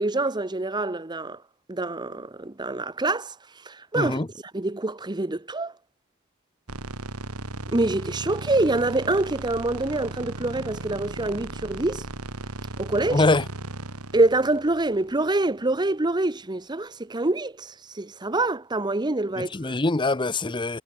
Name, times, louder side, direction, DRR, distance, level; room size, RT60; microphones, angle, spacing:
voice 1, 0.0-1.4 1.7-3.3 3.6-4.2 4.5-5.7 7.7-12.1 12.8-13.2 14.1-19.7, right 2 dB, 20° right, 0.9 m, -26 dB
voice 2, 4.0-4.3 13.1-13.4 19.4-20.8, left 2 dB, 20° left, 0.8 m, -23 dB
sound 1, 6.7-15.9, right 2 dB, 85° right, 3.0 m, -36 dB
head